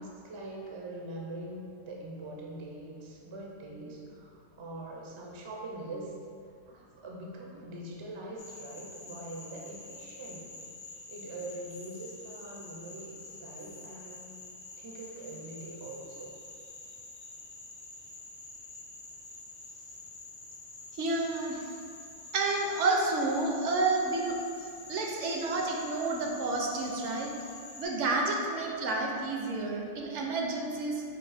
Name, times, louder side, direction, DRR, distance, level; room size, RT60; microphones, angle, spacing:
voice 1, 0.0-6.1 6.4-10.6 11.1-14.3 14.8-16.4, right 1 dB, 40° right, -2 dB, 0.4 m, -43 dB
Frog, 8.4-27.9, left 2 dB, 45° left, 0.6 m, -48 dB
voice 2, 20.9-21.6 22.3-24.4 24.9-27.3 27.8-31.0, right 3 dB, 70° right, 0 dB, 0.9 m, -30 dB
4.2 x 2.5 x 4.8 m, 2.3 s
omnidirectional pair, 1.3 m